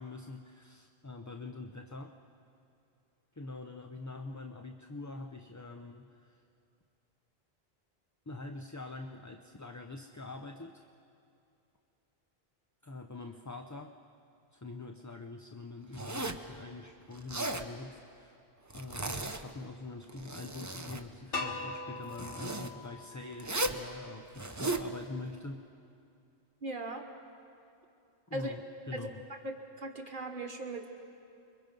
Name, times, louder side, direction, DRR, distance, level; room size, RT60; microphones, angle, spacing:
voice 1, 0.0-2.2 3.3-6.4 8.3-10.8 12.8-13.9 14.5-18.4 18.7-25.7 28.3-28.6 28.9-29.2, left 3 dB, 20° left, 4 dB, 0.5 m, -44 dB
Zipper (clothing), 15.9-16.5 17.1-17.7 18.7-19.6 20.0-21.0 22.1-22.7 23.4-23.8 24.3-24.9, right 2 dB, 20° right, 0.8 m, -36 dB
sound 1, 21.3-24.2, left 3 dB, 65° left, 1.8 m, -41 dB
voice 2, 26.6-27.0 28.3-28.6 28.9-29.1 29.4-30.9, right 2 dB, 55° right, 3 dB, 1.5 m, -38 dB
29.5 x 23.0 x 5.3 m, 2.6 s
omnidirectional pair, 1.0 m